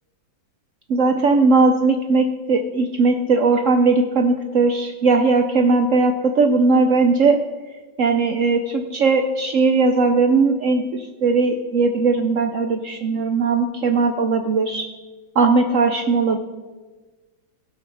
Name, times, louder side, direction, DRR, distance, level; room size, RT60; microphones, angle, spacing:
voice 1, 0.9-7.4 8.0-14.9 15.4-16.4, right 4 dB, 80° right, 6 dB, 0.7 m, -18 dB
16.0 x 5.6 x 6.2 m, 1.3 s
omnidirectional pair, 2.2 m